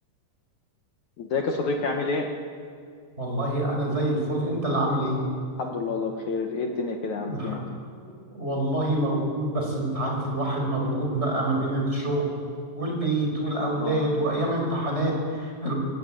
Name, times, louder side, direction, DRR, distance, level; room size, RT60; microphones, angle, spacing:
voice 1, 1.2-2.3 5.6-7.6 13.7-14.3 15.6-15.7, left 3 dB, 75° left, 2 dB, 1.7 m, -29 dB
voice 2, 3.2-5.2 7.2-7.6 8.0-12.3 12.7-15.7, right 1 dB, 15° right, 0 dB, 5.6 m, -26 dB
23.0 x 18.0 x 9.2 m, 2.3 s
omnidirectional pair, 5.5 m